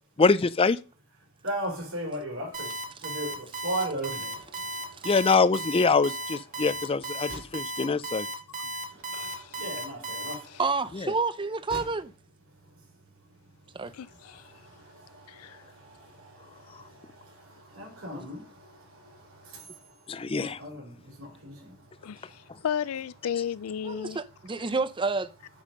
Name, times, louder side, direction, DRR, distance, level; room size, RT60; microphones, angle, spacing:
voice 1, 0.2-0.8 5.0-8.3 10.9-11.1 20.1-20.6, left 4 dB, 25° left, 0.4 m, -24 dB
voice 2, 1.4-5.3 6.5-6.7 7.3-7.6 8.9-10.6 11.7-11.9 12.7-12.9 13.4-22.7 24.0-24.2, right 1 dB, 70° right, 4.4 m, -39 dB
Alarm, 2.5-10.3, right 2 dB, 40° right, 1.8 m, -35 dB
voice 3, 9.1-9.6 13.9-14.5 15.3-15.6 22.0-24.2, left 8 dB, 85° left, 0.4 m, -34 dB
voice 4, 10.6-12.1 13.7-13.9 18.1-18.3 23.8-25.3, right 4 dB, 25° right, 0.6 m, -29 dB
8.5 x 5.4 x 5.2 m
head